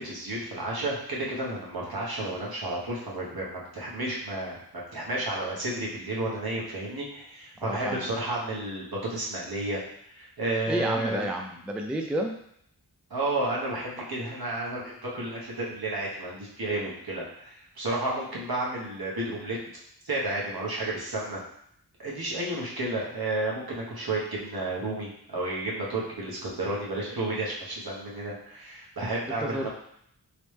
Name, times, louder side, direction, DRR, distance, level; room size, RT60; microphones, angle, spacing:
voice 1, 0.0-4.6 4.9-11.3 13.1-19.6 20.0-21.4 22.0-29.7, right 2 dB, 65° right, -5 dB, 1.1 m, -32 dB
voice 2, 7.6-8.1 10.7-12.3 29.4-29.7, right 1 dB, 5° right, 3 dB, 0.3 m, -30 dB
3.1 x 3.1 x 3.2 m, 0.70 s
wide cardioid pair, 75°, 39 cm